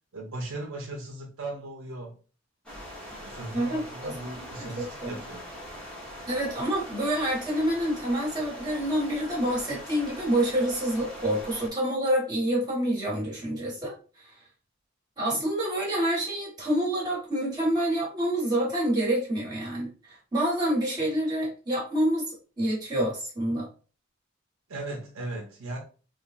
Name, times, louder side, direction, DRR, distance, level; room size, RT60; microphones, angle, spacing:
voice 1, 0.1-2.1 3.0-5.6 24.7-25.8, right 2 dB, 85° right, 0 dB, 0.7 m, -38 dB
sound 1, 2.6-11.7, equal, 5° left, 1.0 m, -42 dB
voice 2, 3.5-5.2 6.3-13.9 14.2-14.3 15.2-23.7, right 1 dB, 20° right, -5 dB, 1.3 m, -27 dB
3.3 x 2.2 x 2.5 m, 0.36 s
head